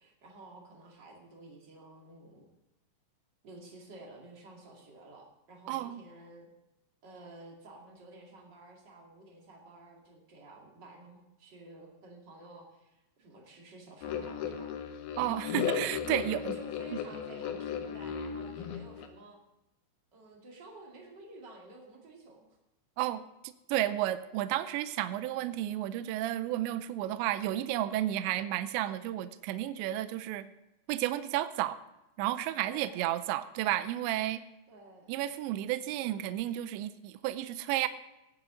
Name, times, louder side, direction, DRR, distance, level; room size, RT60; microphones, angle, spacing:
voice 1, 0.0-2.5 3.4-6.5 7.0-14.8 16.3-19.4 20.1-22.6 32.6-33.0 34.7-35.1, right 2 dB, 40° right, -1 dB, 1.6 m, -52 dB
voice 2, 5.7-6.0 15.2-16.6 23.0-30.5 30.9-31.8 32.2-34.4 35.1-37.9, right 13 dB, 85° right, 12 dB, 2.6 m, -32 dB
sound 1, 14.0-19.1, left 8 dB, 75° left, 2.3 m, -36 dB
18.0 x 9.8 x 3.9 m, 0.94 s
omnidirectional pair, 5.7 m